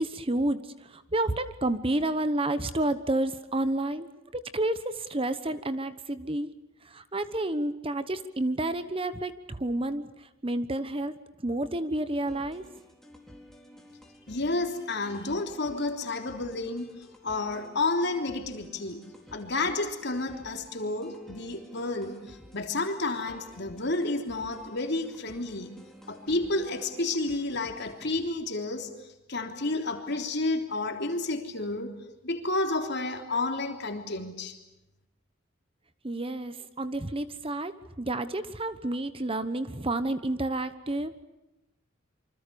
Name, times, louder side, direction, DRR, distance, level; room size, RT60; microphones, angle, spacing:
voice 1, 0.0-6.5 6.8-11.1 11.4-12.6 36.0-37.7 38.0-41.1, right 1 dB, 25° right, 12 dB, 1.1 m, -30 dB
sound 1, 12.3-28.3, equal, ahead, 4.2 m, -51 dB
voice 2, 14.3-16.9 17.2-19.0 19.3-25.7 26.1-28.9 29.3-32.0 32.2-34.6, left 2 dB, 55° left, 4 dB, 3.5 m, -31 dB
27.5 x 25.5 x 7.0 m, 0.95 s
head